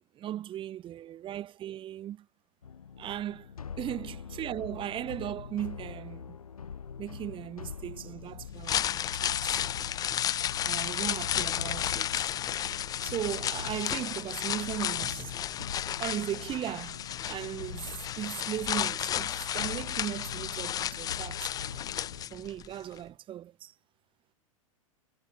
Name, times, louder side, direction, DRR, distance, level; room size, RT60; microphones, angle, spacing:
voice 1, 0.1-2.3 3.0-3.5 3.8-6.4 7.0-9.6 10.6-12.3 13.0-15.5 16.0-17.0 17.3-21.8 22.3-23.7, right 12 dB, 30° right, 1.5 m, -37 dB
sound 1, 2.6-22.3, left 6 dB, 85° left, 0.7 m, -44 dB
sound 2, 8.4-22.7 23.0-23.1, left 10 dB, 20° left, 0.5 m, -33 dB
hypercardioid pair, 100°, 18 cm